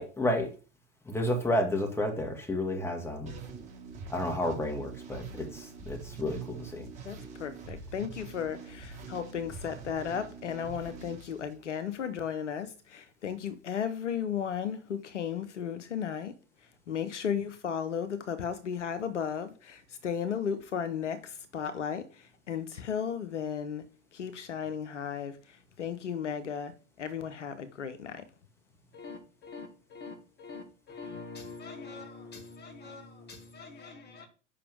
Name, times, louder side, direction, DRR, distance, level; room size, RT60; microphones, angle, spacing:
voice 1, 0.0-0.5 1.1-3.3 4.1-6.9, left 1 dB, 5° left, 1.8 m, -31 dB
sound 1, 3.2-12.1, right 4 dB, 20° right, 3.1 m, -45 dB
voice 2, 7.0-16.3 16.9-23.8 24.1-26.7 27.0-28.2, left 8 dB, 80° left, 0.8 m, -35 dB
voice 3, 28.9-34.3, left 4 dB, 30° left, 2.2 m, -45 dB
6.7 x 5.5 x 3.5 m
figure-of-eight pair, 85°, 35 cm